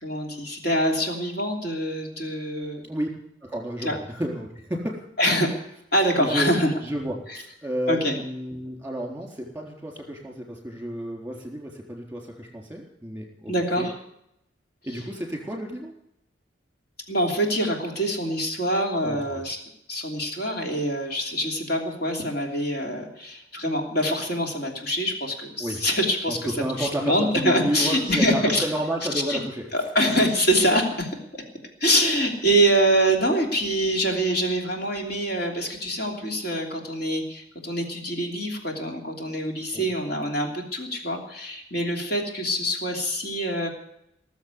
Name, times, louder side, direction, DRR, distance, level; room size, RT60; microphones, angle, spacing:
voice 1, 0.0-2.8 3.8-4.0 5.2-5.5 5.9-6.7 7.3-7.4 7.9-8.1 13.5-13.9 17.1-19.6 19.9-28.7 29.3-29.4 29.7-31.4 31.8-43.7, equal, 50° left, 1 dB, 3.0 m, -25 dB
voice 2, 3.4-5.0 6.2-13.9 14.8-15.9 19.0-19.4 25.6-25.8 26.3-29.9 39.7-39.9, right 1 dB, 10° right, 1 dB, 3.7 m, -31 dB
19.0 x 7.3 x 9.6 m, 0.79 s
head